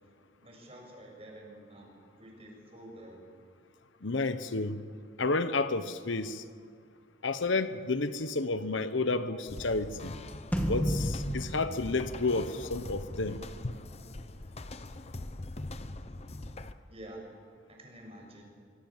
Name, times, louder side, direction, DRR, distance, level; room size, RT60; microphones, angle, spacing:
voice 1, 0.4-3.2 16.9-17.3 17.7-18.4, right 1 dB, 30° right, 6.9 m, -49 dB
voice 2, 4.0-4.8 5.2-6.4 7.2-10.1 10.7-13.7, left 3 dB, 70° left, 1.1 m, -31 dB
sound 1, 9.5-16.7, left 2 dB, 30° left, 0.8 m, -42 dB
sound 2, 10.5-13.1, equal, 10° left, 2.1 m, -33 dB
25.0 x 25.0 x 7.5 m
head